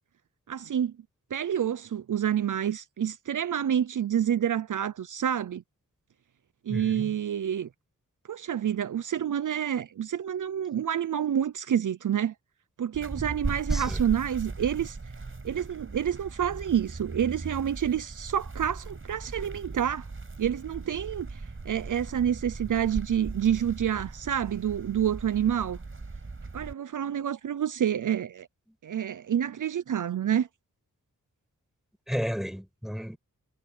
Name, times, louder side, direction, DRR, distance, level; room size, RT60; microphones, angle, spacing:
voice 1, 0.5-0.9 1.3-5.6 6.7-7.7 8.3-12.3 12.8-15.0 15.4-20.0 20.4-25.8 26.5-28.5 28.8-30.5, right 9 dB, 65° right, 0.6 m, -28 dB
voice 2, 6.7-7.1 13.7-14.0 32.1-33.2, equal, ahead, 6.4 m, -33 dB
sound 1, 12.9-26.7, right 3 dB, 40° right, 5.7 m, -38 dB
wide cardioid pair, 95°, 33 cm